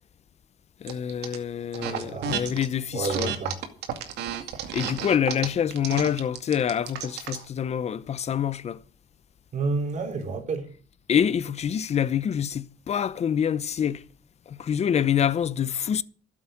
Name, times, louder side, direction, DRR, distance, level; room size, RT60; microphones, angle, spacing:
voice 1, 0.8-3.3 4.7-8.8 11.1-14.1 14.5-16.0, left 8 dB, 40° left, 0.8 m, -26 dB
sound 1, 0.9-1.4 1.7-2.7 3.0-7.4, right 8 dB, 80° right, 2.3 m, -32 dB
voice 2, 1.8-2.5 2.9-3.5 9.5-10.7, right 3 dB, 45° right, 3.7 m, -30 dB
12.5 x 7.6 x 8.9 m
cardioid pair, 110°, 17 cm